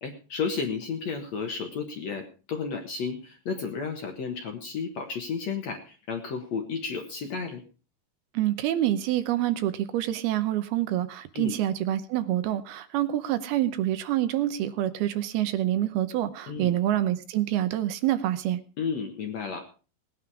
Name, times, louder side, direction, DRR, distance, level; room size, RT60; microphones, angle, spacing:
voice 1, 0.0-7.6 11.3-11.6 16.5-16.8 18.8-19.7, left 5 dB, 60° left, 4 dB, 2.0 m, -32 dB
voice 2, 8.3-18.6, right 13 dB, 75° right, 11 dB, 2.7 m, -27 dB
18.5 x 9.5 x 4.8 m, 0.36 s
omnidirectional pair, 4.6 m